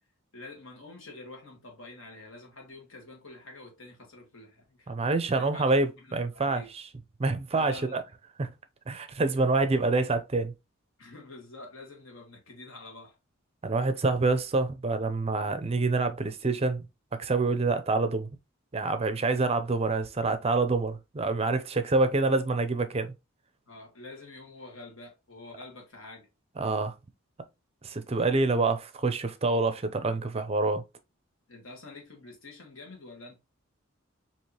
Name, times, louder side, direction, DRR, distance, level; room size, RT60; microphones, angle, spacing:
voice 1, 0.3-4.9 5.3-6.7 7.5-8.0 11.0-13.2 23.7-26.3 31.5-33.4, left 2 dB, 70° left, 1.7 m, -47 dB
voice 2, 4.9-6.8 7.2-8.0 8.4-8.5 8.9-10.5 13.6-16.8 17.2-18.3 18.7-23.1 26.6-26.9 27.8-30.8, right 3 dB, 30° right, 0.5 m, -27 dB
4.7 x 2.9 x 2.9 m
head